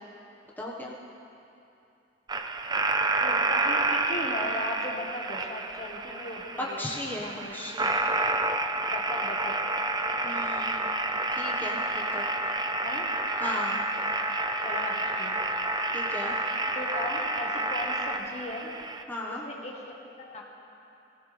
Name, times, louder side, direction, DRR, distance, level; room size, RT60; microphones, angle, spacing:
voice 1, 0.6-1.0 6.6-7.9 10.2-10.9 11.3-12.2 13.4-13.8 15.9-16.4 19.1-19.4, left 1 dB, 10° left, -4 dB, 1.4 m, -36 dB
sound 1, 2.3-19.0, right 2 dB, 25° right, 0.6 m, -29 dB
voice 2, 3.2-6.8 7.2-7.6 8.9-9.5 12.8-13.1 14.6-15.3 16.7-18.7 19.3-20.4, left 2 dB, 40° left, 0 dB, 1.5 m, -37 dB
22.5 x 16.0 x 3.4 m, 2.7 s
head